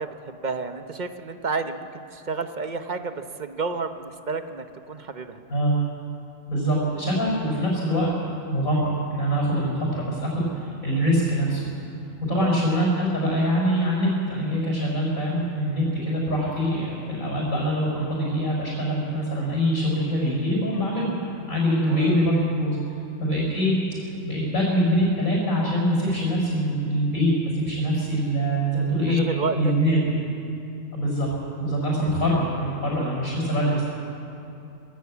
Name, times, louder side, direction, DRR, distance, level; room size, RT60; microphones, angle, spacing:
voice 1, 0.0-5.4 9.6-10.0 12.3-12.7 21.9-22.3 29.1-29.7 31.8-32.2, right 4 dB, 40° right, 8 dB, 0.9 m, -31 dB
voice 2, 6.5-8.1 8.5-11.7 12.3-21.1 21.5-22.8 23.2-23.8 24.2-29.2 29.6-30.2 30.9-31.3 31.6-33.8, equal, 85° left, -4 dB, 5.4 m, -24 dB
21.0 x 15.0 x 8.4 m, 2.7 s
omnidirectional pair, 1.4 m